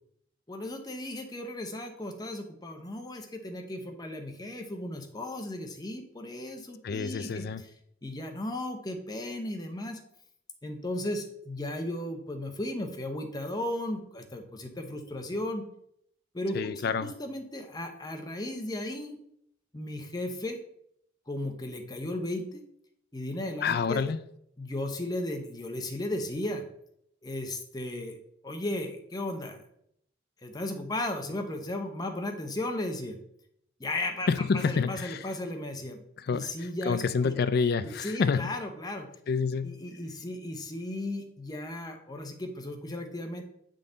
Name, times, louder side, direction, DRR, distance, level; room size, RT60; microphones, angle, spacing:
voice 1, 0.5-7.7 8.0-10.0 10.6-15.6 16.3-16.7 17.0-19.2 19.7-20.6 21.3-22.6 23.1-24.1 24.6-26.6 27.2-28.2 28.4-29.6 30.4-33.2 33.8-34.3 34.5-36.0 36.3-37.3 37.8-39.1 39.6-43.4, left 1 dB, 20° left, 4 dB, 0.7 m, -35 dB
voice 2, 6.8-7.6 16.5-17.1 23.6-24.2 34.3-35.2 36.2-36.5 36.9-38.4 39.3-39.7, left 5 dB, 50° left, 13 dB, 0.3 m, -28 dB
8.4 x 3.8 x 3.9 m, 0.73 s
head